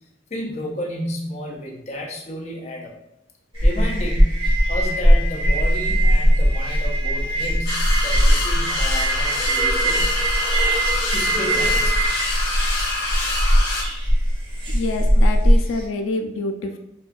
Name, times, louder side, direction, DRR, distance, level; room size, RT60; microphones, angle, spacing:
voice 1, 0.3-2.9 3.6-4.4 4.7-10.1 11.1-12.0, equal, 35° left, -1 dB, 0.5 m, -32 dB
sound 1, 3.5-15.8, equal, 25° right, 0.8 m, -19 dB
sound 2, 7.7-13.8, left 2 dB, 50° left, 1.1 m, -26 dB
voice 2, 14.7-16.8, left 3 dB, 90° left, 4 dB, 0.3 m, -27 dB
4.2 x 2.3 x 2.4 m, 0.84 s
head